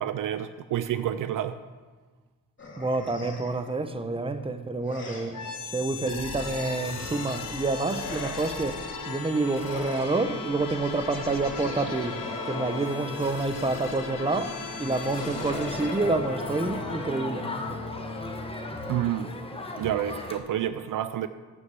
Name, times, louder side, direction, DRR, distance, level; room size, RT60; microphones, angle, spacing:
voice 1, 0.0-1.6 18.9-19.3 19.8-21.3, right 11 dB, 65° right, 0.5 m, -29 dB
sound 1, 2.6-3.7 4.9-5.6 6.4-7.3 8.0-8.9 9.5-10.6 11.4-13.5 15.0-17.5, left 2 dB, 35° left, 2.5 m, -41 dB
voice 2, 2.8-5.4 5.7-17.5, right 3 dB, 15° right, 0.8 m, -28 dB
sound 2, 5.3-19.2, left 4 dB, 65° left, 2.7 m, -37 dB
Crowd, 15.1-20.4, left 2 dB, 15° left, 1.1 m, -37 dB
7.1 x 6.6 x 7.6 m
cardioid pair, 75°, 35 cm